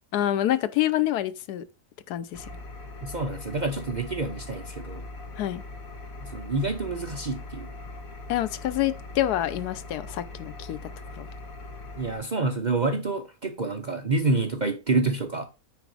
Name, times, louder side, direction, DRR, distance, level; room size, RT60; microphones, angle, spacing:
voice 1, 0.1-1.6 2.1-2.4 5.4-5.6 8.3-10.8 11.2-11.3, left 13 dB, 85° left, 1.2 m, -27 dB
Engine, 2.3-12.2, left 2 dB, 65° left, 1.8 m, -41 dB
voice 2, 3.0-5.0 6.2-7.7 12.0-15.4, right 3 dB, 45° right, 0.6 m, -28 dB
9.2 x 4.0 x 4.7 m
omnidirectional pair, 1.6 m